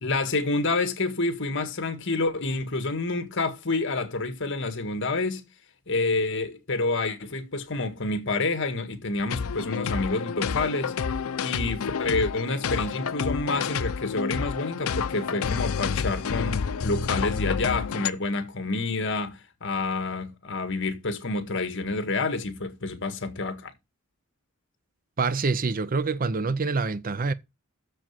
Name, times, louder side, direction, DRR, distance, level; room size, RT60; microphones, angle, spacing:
voice 1, 0.0-5.4 5.9-11.0 11.4-23.7, left 3 dB, 60° left, 1.7 m, -28 dB
sound 1, 9.3-18.1, left 6 dB, 85° left, 0.6 m, -29 dB
voice 2, 25.2-27.3, right 4 dB, 40° right, 0.6 m, -26 dB
7.5 x 6.9 x 7.3 m
head